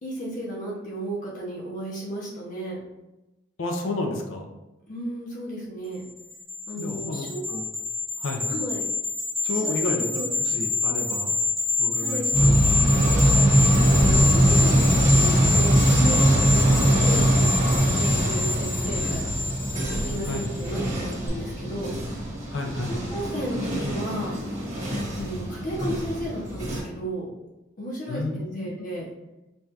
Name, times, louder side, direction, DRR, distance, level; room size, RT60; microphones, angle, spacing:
voice 1, 0.0-2.8 4.9-6.0 6.7-7.4 8.4-8.9 9.5-10.3 12.0-12.2 13.1-19.2 20.1-21.9 22.9-24.3 25.1-27.3 27.8-29.1, right 1 dB, 40° left, -5 dB, 0.7 m, -34 dB
voice 2, 3.6-4.5 6.8-7.6 8.2-8.5 9.4-11.3 11.8-12.6 20.3-20.4 22.5-22.9 28.1-28.9, left 2 dB, 80° left, 3 dB, 0.6 m, -31 dB
sound 1, 6.2-20.8 21.1-21.3, left 3 dB, ahead, 0.5 m, -27 dB
sound 2, 12.3-26.8, right 1 dB, 35° right, 1.3 m, -22 dB
5.4 x 2.3 x 2.8 m, 1.0 s
head